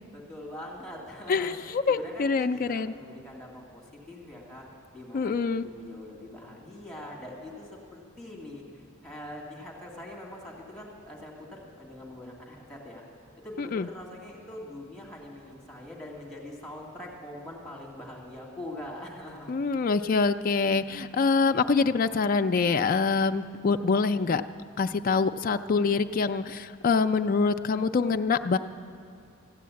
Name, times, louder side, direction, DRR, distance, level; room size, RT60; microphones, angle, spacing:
voice 1, 0.1-4.6 4.9-13.0 13.4-19.5, left 1 dB, 5° left, -3 dB, 2.0 m, -43 dB
voice 2, 1.3-2.9 5.1-5.7 13.6-13.9 19.5-24.4 24.8-28.6, left 4 dB, 40° left, 8 dB, 0.4 m, -25 dB
14.5 x 8.5 x 8.3 m, 2.3 s
head